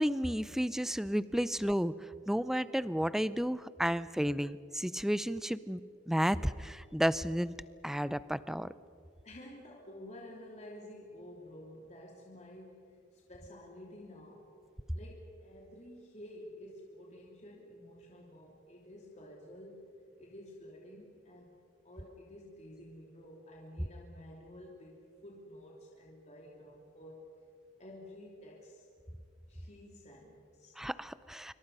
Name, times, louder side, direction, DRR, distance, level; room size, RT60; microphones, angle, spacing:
voice 1, 0.0-1.9 2.3-7.5 7.8-8.7 30.8-31.5, equal, ahead, 16 dB, 0.5 m, -32 dB
voice 2, 9.2-14.6 14.9-19.9 20.2-27.3 27.8-28.9 29.5-30.8, left 1 dB, 40° left, -2 dB, 3.0 m, -51 dB
26.5 x 24.0 x 5.5 m, 2.3 s
head